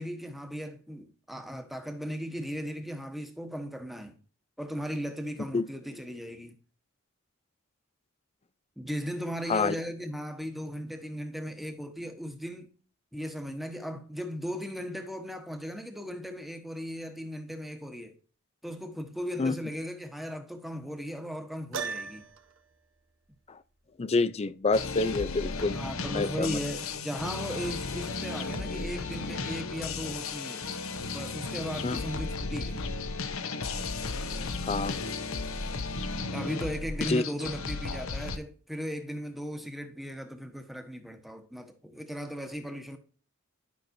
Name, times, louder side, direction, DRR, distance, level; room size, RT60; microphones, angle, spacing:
voice 1, 0.0-4.1 4.6-6.5 8.8-12.7 13.1-18.1 18.6-22.3 25.7-30.6 31.1-32.9 36.3-43.0, equal, ahead, 1.1 m, -37 dB
Piano, 21.7-22.6, right 5 dB, 65° right, 1.1 m, -36 dB
voice 2, 24.0-25.8 26.1-26.6 31.8-32.0 34.6-35.0 37.0-37.2, left 3 dB, 30° left, 0.4 m, -27 dB
sound 1, 24.7-38.4, left 3 dB, 65° left, 0.8 m, -34 dB
12.0 x 5.8 x 2.7 m
head